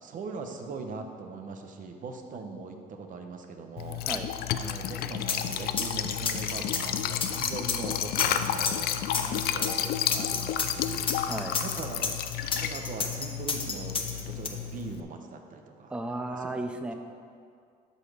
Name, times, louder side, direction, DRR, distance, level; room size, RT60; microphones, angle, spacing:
voice 1, 0.0-4.0 4.5-8.9 9.3-11.1 11.6-12.1 12.6-15.9 16.3-16.4, right 4 dB, 50° right, 5 dB, 0.9 m, -40 dB
Liquid, 3.8-15.0, left 10 dB, 65° left, 0.5 m, -32 dB
sound 1, 5.3-14.5, left 5 dB, 30° left, 0.8 m, -30 dB
voice 2, 9.1-9.4 11.3-11.6 15.9-16.9, right 2 dB, 5° right, 6 dB, 0.5 m, -35 dB
12.0 x 4.3 x 5.0 m, 2.3 s
cardioid pair, 110°, 17 cm